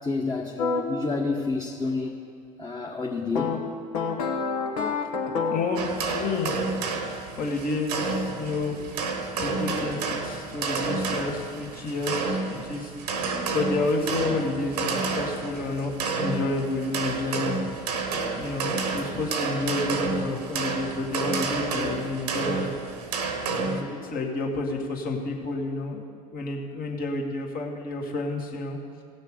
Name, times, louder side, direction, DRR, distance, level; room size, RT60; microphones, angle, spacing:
voice 1, 0.0-2.1 2.6-3.6, left 3 dB, 20° left, -2 dB, 1.2 m, -29 dB
sound 1, 0.6-0.8 3.3-5.8, left 5 dB, 75° left, 1.2 m, -27 dB
voice 2, 5.5-6.5 7.4-9.1 9.4-12.9 13.5-17.6 18.3-22.7 23.5-28.8, left 3 dB, 50° left, 0 dB, 2.0 m, -30 dB
sound 2, 5.8-23.8, right 4 dB, 80° right, 1.1 m, -30 dB
17.0 x 6.4 x 5.0 m, 2.4 s
hypercardioid pair, 65°, 20 cm